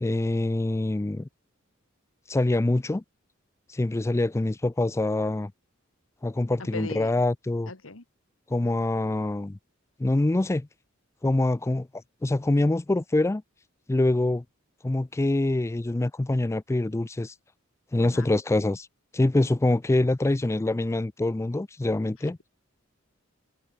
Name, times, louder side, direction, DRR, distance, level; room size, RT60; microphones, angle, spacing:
voice 1, 0.0-1.3 2.3-3.0 3.7-5.5 6.2-7.7 8.5-9.6 10.0-10.7 11.2-11.9 12.2-13.4 13.9-14.4 14.8-17.3 17.9-18.9 19.1-22.4, left 2 dB, 15° left, 0.4 m, -25 dB
voice 2, 6.6-7.1 7.7-8.0 18.0-18.3, left 3 dB, 80° left, 2.2 m, -38 dB
head